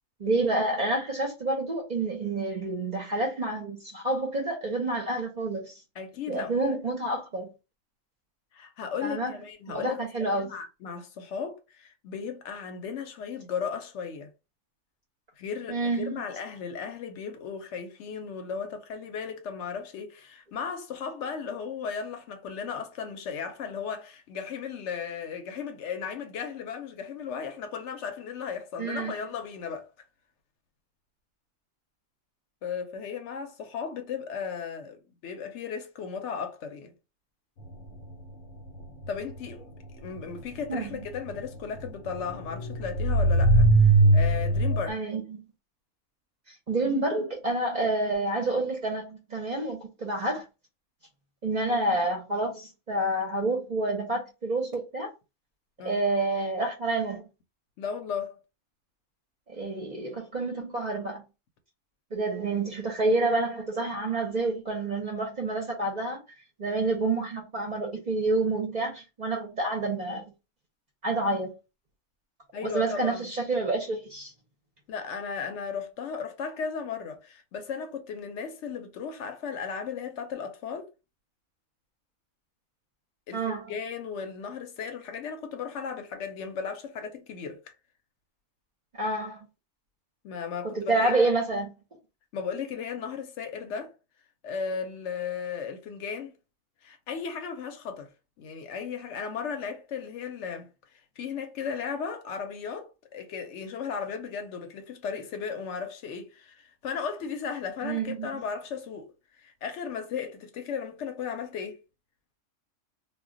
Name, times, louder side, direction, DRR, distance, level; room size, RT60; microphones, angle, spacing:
voice 1, 0.2-5.7 6.3-7.5 9.0-9.3 9.7-10.5 15.7-16.2 28.8-29.2 40.7-41.0 44.9-45.4 46.7-50.4 51.4-55.1 55.8-57.2 59.5-61.2 62.1-66.2 66.6-70.2 71.0-71.5 72.6-74.3 83.3-83.7 89.0-89.5 90.6-91.7 107.8-108.3, right 2 dB, 45° right, 0.6 m, -28 dB
voice 2, 6.0-6.8 8.5-14.3 15.4-29.9 32.6-35.0 35.2-36.9 39.1-39.7 40.0-45.0 55.8-56.0 57.8-58.4 72.5-73.3 74.9-80.9 83.3-87.7 90.2-91.1 92.3-93.9 94.4-96.3 96.8-98.1 98.4-100.7 101.2-109.1 109.4-111.8, left 6 dB, 70° left, 0.8 m, -36 dB
sound 1, 37.7-44.9, right 2 dB, 90° left, 1.1 m, -22 dB
2.2 x 2.1 x 3.6 m
omnidirectional pair, 1.3 m